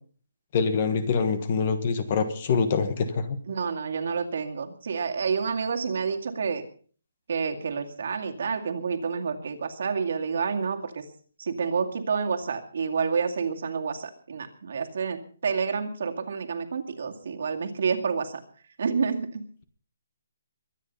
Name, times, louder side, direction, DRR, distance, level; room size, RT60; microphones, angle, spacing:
voice 1, 0.5-3.4, left 5 dB, 25° left, 11 dB, 1.4 m, -25 dB
voice 2, 3.5-6.6 7.3-11.0 11.4-18.4 18.8-19.6, right 5 dB, 45° right, 4 dB, 2.3 m, -29 dB
23.5 x 10.0 x 5.5 m, 0.43 s
hypercardioid pair, 180°, 0 cm